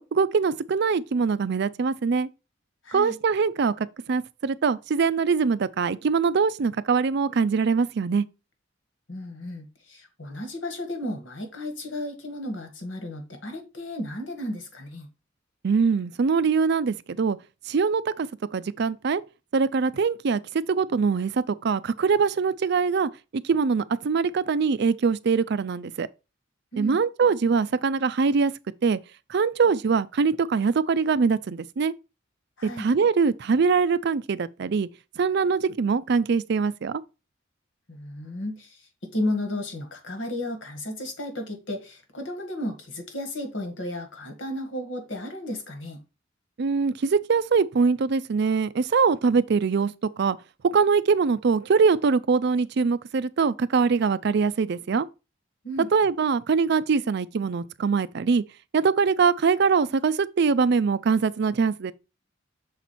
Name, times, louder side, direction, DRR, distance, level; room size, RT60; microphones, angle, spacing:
voice 1, 0.0-2.3 2.9-8.2 15.6-17.4 17.7-19.2 19.5-20.4 20.7-26.1 26.8-28.5 28.8-29.0 29.3-31.9 32.6-34.9 35.2-37.0 46.6-50.4 50.6-55.1 55.9-58.4 58.7-61.9, right 5 dB, 60° right, 0.4 m, -23 dB
voice 2, 2.8-3.2 9.1-15.1 26.7-27.0 32.6-32.9 37.9-46.0 55.6-55.9, left 1 dB, 80° left, 1.9 m, -33 dB
6.4 x 4.2 x 4.3 m
head